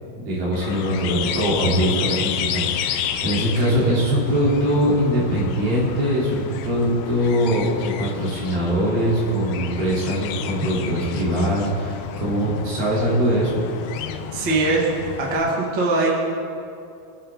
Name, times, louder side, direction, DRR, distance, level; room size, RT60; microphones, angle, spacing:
voice 1, 0.0-13.5, equal, 65° right, -6 dB, 5.1 m, -22 dB
sound 1, 0.5-15.4, left 9 dB, 85° left, 2.6 m, -31 dB
voice 2, 14.3-14.9 15.2-16.2, right 2 dB, 35° right, -3 dB, 2.1 m, -21 dB
25.0 x 9.3 x 3.8 m, 2.5 s
omnidirectional pair, 4.3 m